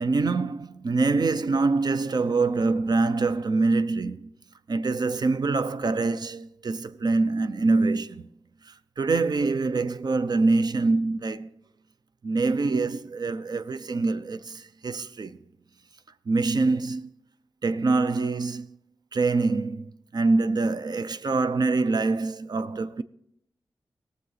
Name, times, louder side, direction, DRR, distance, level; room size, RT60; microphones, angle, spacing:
voice 1, 0.0-4.3 4.7-8.3 8.7-11.5 12.2-15.4 16.3-17.1 17.6-18.8 19.1-23.0, right 3 dB, 60° right, 0.6 m, -25 dB
18.0 x 7.0 x 4.1 m
cardioid pair, 40°, 8 cm